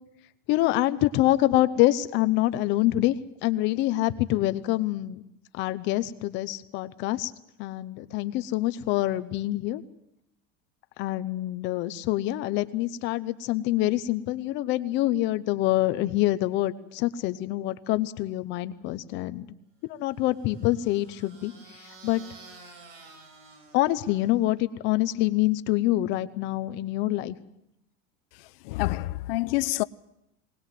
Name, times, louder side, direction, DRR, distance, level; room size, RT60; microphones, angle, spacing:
voice 1, 0.5-3.2 3.4-5.2 5.5-7.3 7.6-9.8 11.0-19.5 19.8-21.5 22.0-22.2 23.7-27.4, left 16 dB, 40° left, 0.8 m, -26 dB
sound 1, 20.1-24.6, right 3 dB, 70° right, 4.9 m, -51 dB
voice 2, 28.7-29.8, left 19 dB, 75° left, 0.7 m, -27 dB
20.5 x 20.0 x 7.6 m
cardioid pair, 175°, 29 cm